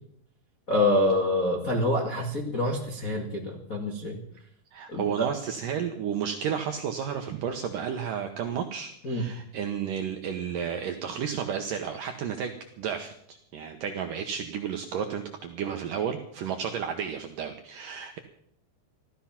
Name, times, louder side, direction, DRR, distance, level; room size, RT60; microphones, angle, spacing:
voice 1, 0.7-4.2 4.9-5.1 9.0-9.2, left 1 dB, 75° left, -1 dB, 0.7 m, -26 dB
voice 2, 4.7-18.2, right 8 dB, 75° right, 5 dB, 2.0 m, -32 dB
16.0 x 13.0 x 5.8 m, 0.71 s
omnidirectional pair, 5.1 m